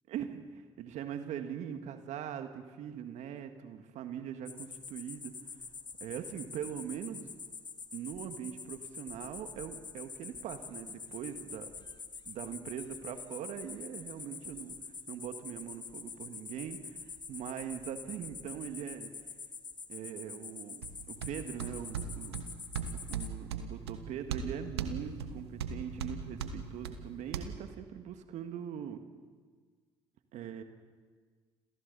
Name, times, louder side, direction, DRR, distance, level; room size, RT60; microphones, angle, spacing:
voice 1, 0.1-5.3 6.0-7.3 7.9-11.7 12.3-14.8 15.1-17.0 17.3-19.1 19.9-22.4 23.1-29.0 30.3-30.6, right 9 dB, 60° right, 7 dB, 1.8 m, -41 dB
sound 1, 4.5-23.3, left 5 dB, 35° left, 1.7 m, -46 dB
sound 2, 20.8-27.4, right 6 dB, 85° right, 1.4 m, -39 dB
29.5 x 27.5 x 4.2 m, 1.6 s
hypercardioid pair, 50°, 13 cm